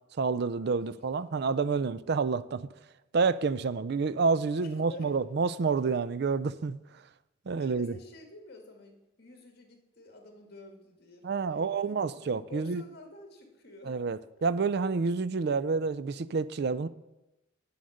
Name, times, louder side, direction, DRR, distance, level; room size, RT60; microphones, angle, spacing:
voice 1, 0.2-2.7 3.1-6.8 7.5-7.9 11.2-12.8 13.9-16.9, right 4 dB, 55° right, 0.4 m, -29 dB
voice 2, 4.6-5.1 7.6-13.9, left 2 dB, 50° left, 1.8 m, -50 dB
8.5 x 7.8 x 6.4 m
head